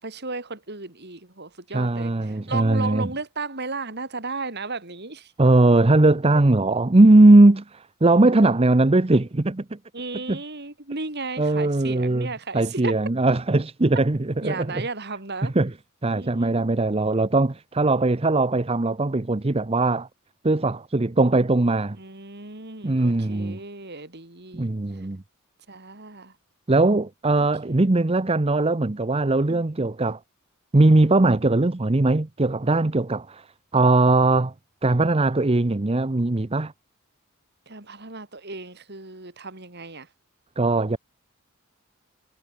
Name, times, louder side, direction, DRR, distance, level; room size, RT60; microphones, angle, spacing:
voice 1, 0.0-5.3 9.9-12.9 14.4-15.5 16.1-16.7 21.9-24.7 25.7-26.3 27.6-27.8 29.5-29.6 37.7-40.1, right 3 dB, 50° right, 4.4 m, -35 dB
voice 2, 1.7-3.1 5.4-9.8 10.3-10.4 11.4-14.8 15.4-15.7 16.0-20.1 20.4-22.0 22.8-23.6 24.5-25.2 26.7-30.2 30.7-33.4 33.7-34.5 34.8-36.7 40.6-41.0, right 2 dB, 25° right, 0.7 m, -20 dB
head